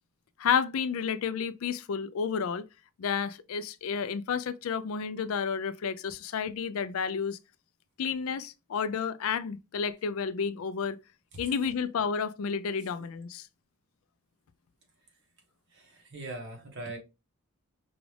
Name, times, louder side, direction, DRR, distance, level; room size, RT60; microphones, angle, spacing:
voice 1, 0.4-2.6 3.0-7.4 8.0-11.0 11.4-13.5, left 6 dB, 70° left, 0.4 m, -31 dB
voice 2, 15.7-17.0, right 2 dB, 55° right, 1.2 m, -41 dB
5.0 x 2.4 x 3.2 m
head